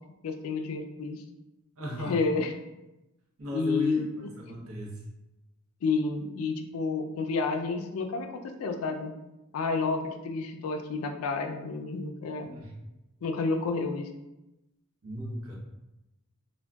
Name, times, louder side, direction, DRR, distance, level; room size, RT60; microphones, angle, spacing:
voice 1, 0.2-1.2 2.0-2.5 3.5-4.0 5.8-8.3 8.6-9.1 9.5-12.5 13.2-14.1, left 4 dB, 85° left, 5 dB, 0.4 m, -30 dB
voice 2, 1.8-2.2 3.4-5.0 12.4-12.7 15.0-15.6, equal, 80° right, -1 dB, 0.7 m, -36 dB
3.4 x 2.2 x 2.2 m, 0.95 s
head